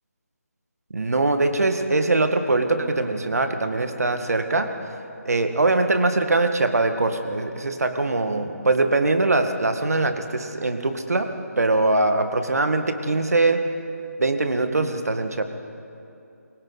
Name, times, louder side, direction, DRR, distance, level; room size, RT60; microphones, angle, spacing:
voice 1, 0.9-4.7 5.3-13.7 14.2-15.4, right 2 dB, 70° right, 7 dB, 1.9 m, -22 dB
28.5 x 23.5 x 4.1 m, 2.7 s
figure-of-eight pair, 165°, 9 cm